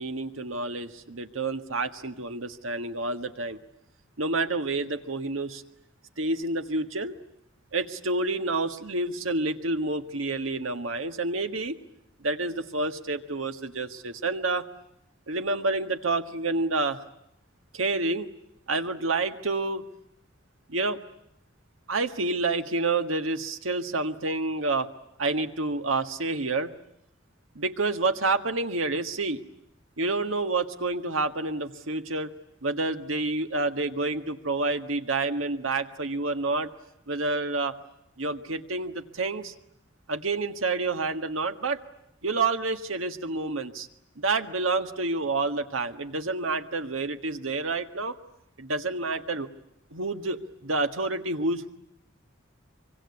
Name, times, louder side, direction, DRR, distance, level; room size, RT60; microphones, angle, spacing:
voice 1, 0.0-3.6 4.2-5.6 6.2-7.1 7.7-11.8 12.2-14.7 15.3-17.0 17.7-18.3 18.7-19.9 20.7-21.0 21.9-24.9 25.2-26.7 27.5-29.4 30.0-32.3 32.6-36.7 37.1-37.8 38.2-39.5 40.1-41.8 42.2-43.9 44.2-48.2 48.6-49.5 49.9-51.7, right 3 dB, 90° right, 7 dB, 1.7 m, -28 dB
25.0 x 24.5 x 9.7 m, 0.78 s
head